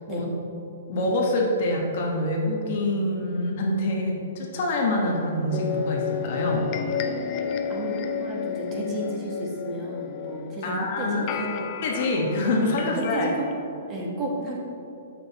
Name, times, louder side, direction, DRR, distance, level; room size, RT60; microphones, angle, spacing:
voice 1, 0.9-6.6 10.6-11.3 11.8-13.3, left 1 dB, 45° left, -1 dB, 1.2 m, -25 dB
sound 1, 5.5-13.6, left 7 dB, 30° left, 0.4 m, -32 dB
voice 2, 8.2-11.7 12.8-13.5 13.9-14.6, right 1 dB, 25° right, -1 dB, 1.2 m, -32 dB
7.3 x 6.1 x 4.1 m, 2.8 s
hypercardioid pair, 160°, 0 cm